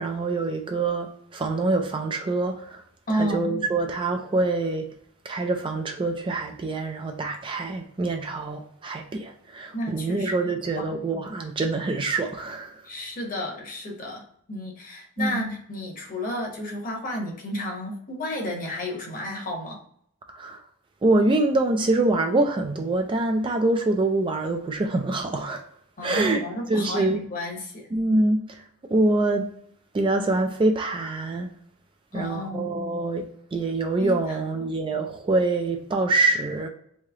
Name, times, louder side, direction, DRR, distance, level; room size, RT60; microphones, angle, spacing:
voice 1, 0.0-2.8 3.1-4.8 5.2-12.8 15.2-15.5 20.3-20.6 21.0-25.6 26.0-26.4 26.7-27.3 27.9-28.6 28.9-29.5 29.9-31.5 32.1-36.7, right 2 dB, 25° right, 0.3 m, -25 dB
voice 2, 3.1-3.5 9.7-10.3 10.8-10.9 12.9-14.2 14.5-19.8 26.0-27.9 32.1-32.7 34.0-34.4, equal, 40° left, 1.0 m, -31 dB
3.2 x 2.8 x 3.5 m
head